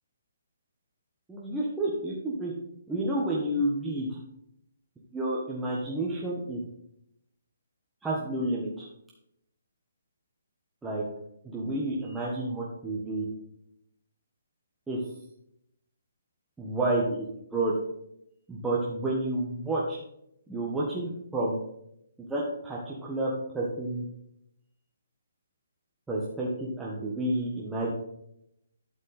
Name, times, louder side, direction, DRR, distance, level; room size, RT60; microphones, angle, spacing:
voice 1, 1.3-2.5 2.9-4.2 5.1-6.6 8.0-8.9 10.8-11.0 11.4-13.3 14.9-15.0 16.6-17.7 18.5-20.0 20.5-21.6 22.3-24.1 26.1-27.9, right 1 dB, 5° right, -6 dB, 1.4 m, -30 dB
11.5 x 5.3 x 4.1 m, 0.76 s
hypercardioid pair, 150°, 0 cm